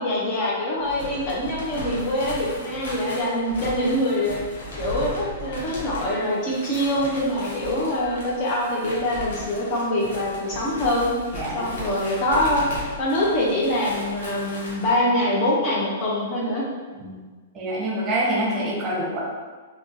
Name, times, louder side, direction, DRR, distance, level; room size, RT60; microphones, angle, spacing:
voice 1, 0.0-4.4 4.8-11.1 11.5-12.6 13.0-16.6, left 1 dB, 35° left, -4 dB, 0.7 m, -24 dB
sound 1, 0.8-14.9, left 1 dB, 60° left, 0.9 m, -36 dB
voice 2, 11.3-11.7 17.0-17.3 17.5-19.2, right 1 dB, 20° right, -5 dB, 0.8 m, -26 dB
3.7 x 2.3 x 2.6 m, 1.4 s
figure-of-eight pair, 105°, 0 cm